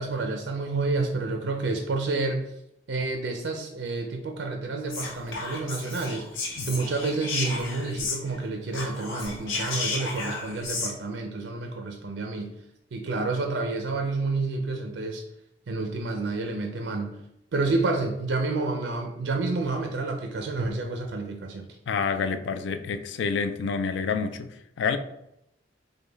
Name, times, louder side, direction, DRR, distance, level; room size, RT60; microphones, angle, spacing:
voice 1, 0.0-2.4 2.9-6.3 6.7-12.5 12.9-15.2 15.7-17.1 17.5-21.7, right 3 dB, 70° right, 0.4 m, -29 dB
Whispering, 4.9-8.4 8.7-10.9, left 3 dB, 90° left, 1.0 m, -33 dB
voice 2, 21.9-25.0, left 5 dB, 65° left, 0.3 m, -28 dB
5.0 x 2.2 x 3.3 m
head